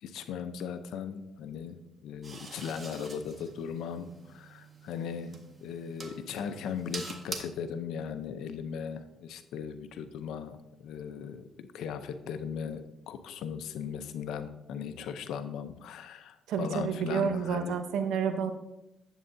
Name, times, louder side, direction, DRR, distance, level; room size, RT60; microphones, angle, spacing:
voice 1, 0.0-17.8, left 7 dB, 85° left, 9 dB, 0.6 m, -38 dB
sound 1, 2.2-7.4, right 3 dB, 35° right, 1.5 m, -45 dB
voice 2, 16.5-18.5, right 7 dB, 85° right, 8 dB, 0.8 m, -30 dB
11.0 x 8.1 x 2.7 m, 0.92 s
cardioid pair, 90°, 0 cm